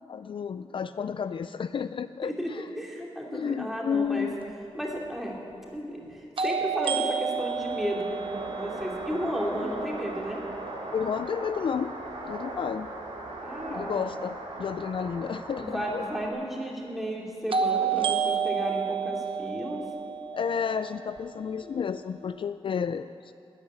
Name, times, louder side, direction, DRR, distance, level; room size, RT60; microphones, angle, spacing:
voice 1, 0.1-2.8 3.3-4.4 10.9-12.0 12.2-12.9 13.7-16.1 20.3-23.3, left 7 dB, 55° left, 12 dB, 0.3 m, -31 dB
voice 2, 2.2-4.3 4.7-5.4 5.7-10.4 13.4-14.0 15.6-19.8, equal, 5° right, -2 dB, 2.6 m, -33 dB
sound 1, 4.4-4.5 6.4-10.3 17.5-21.5, right 6 dB, 60° right, 0.9 m, -30 dB
sound 2, 7.3-16.3, right 2 dB, 80° right, 2.6 m, -39 dB
14.0 x 10.5 x 9.9 m, 2.6 s
wide cardioid pair, 160°, 10 cm